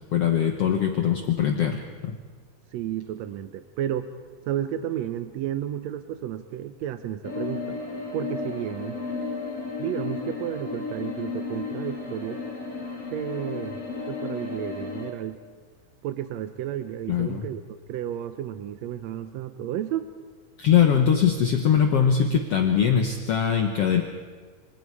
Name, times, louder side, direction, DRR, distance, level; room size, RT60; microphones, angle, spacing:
voice 1, 0.1-2.2 17.1-17.5 20.6-24.0, left 8 dB, 55° left, 4 dB, 2.0 m, -22 dB
voice 2, 2.7-4.1 4.4-7.8 8.1-9.0 9.8-12.4 13.1-13.8 14.1-15.4 16.0-17.6 17.9-20.1, right 11 dB, 75° right, 10 dB, 1.7 m, -32 dB
sound 1, 7.2-15.1, left 4 dB, 25° left, 3.1 m, -33 dB
26.5 x 26.0 x 4.8 m, 1.5 s
omnidirectional pair, 3.8 m